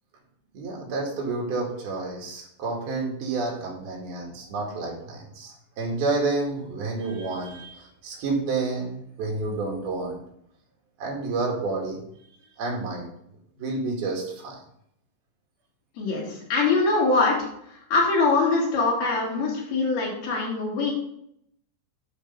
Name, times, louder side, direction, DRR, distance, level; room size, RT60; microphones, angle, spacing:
voice 1, 0.5-10.2 11.0-12.0 12.6-13.1 13.6-14.6, right 3 dB, 85° right, -1 dB, 4.1 m, -29 dB
voice 2, 16.0-20.9, left 3 dB, 90° left, -3 dB, 4.5 m, -23 dB
10.0 x 4.8 x 5.5 m, 0.73 s
omnidirectional pair, 4.2 m